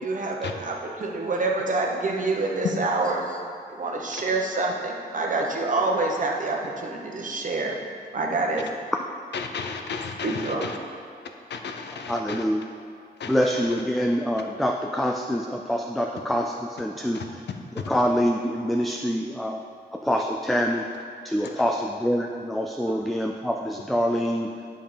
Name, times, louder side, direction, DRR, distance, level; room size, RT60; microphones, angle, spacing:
voice 1, 0.0-3.4 3.7-7.7 8.1-8.7 10.2-10.7 21.4-21.6 22.9-23.0, right 3 dB, 50° right, 1.0 m, -27 dB
voice 2, 9.3-10.8 11.5-12.4 13.2-13.8 17.1-17.3, left 5 dB, 80° left, 0.7 m, -33 dB
voice 3, 12.1-12.7 13.3-17.2 17.9-19.6 20.1-20.9 21.3-24.5, equal, ahead, 0.3 m, -25 dB
9.2 x 5.6 x 5.0 m
wide cardioid pair, 150°, 17 cm